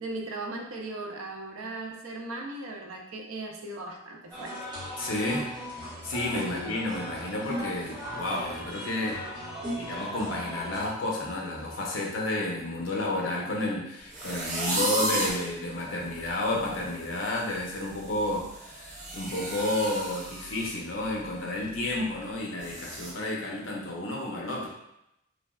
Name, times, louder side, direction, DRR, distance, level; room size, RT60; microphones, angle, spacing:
voice 1, 0.0-4.6 6.5-6.8, right 2 dB, 85° right, 2 dB, 0.5 m, -38 dB
sound 1, 4.3-10.9, equal, 20° right, 1.0 m, -37 dB
voice 2, 5.0-5.5 6.0-9.2 9.8-24.7, left 2 dB, 70° left, -2 dB, 0.6 m, -31 dB
sound 2, 14.1-15.5 16.1-16.2 16.5-16.8 17.1-20.7 21.1-21.3 21.7-21.8 22.6-23.1, right 1 dB, 35° right, 0.6 m, -33 dB
3.3 x 2.2 x 2.3 m, 0.84 s
head